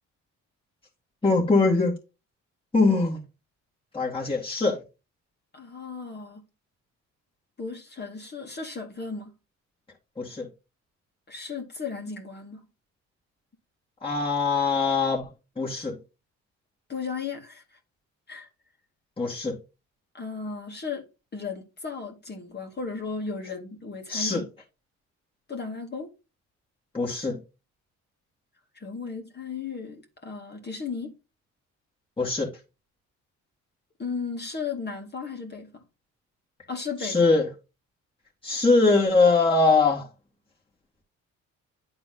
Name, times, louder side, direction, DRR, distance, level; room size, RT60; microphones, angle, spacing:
voice 1, 1.2-2.0 2.7-3.2 3.9-4.8 10.2-10.5 14.0-15.3 15.6-16.0 19.2-19.6 24.1-24.4 26.9-27.4 32.2-32.5 37.0-37.5 38.4-40.1, left 3 dB, 15° left, 2.5 m, -22 dB
voice 2, 5.5-6.4 7.6-9.3 11.3-12.6 16.9-17.6 18.3-18.5 20.1-21.1 21.3-24.5 25.5-26.1 28.7-31.1 34.0-35.8 36.7-37.3, left 5 dB, 35° left, 2.3 m, -35 dB
9.6 x 4.0 x 3.9 m
cardioid pair, 90°, 30 cm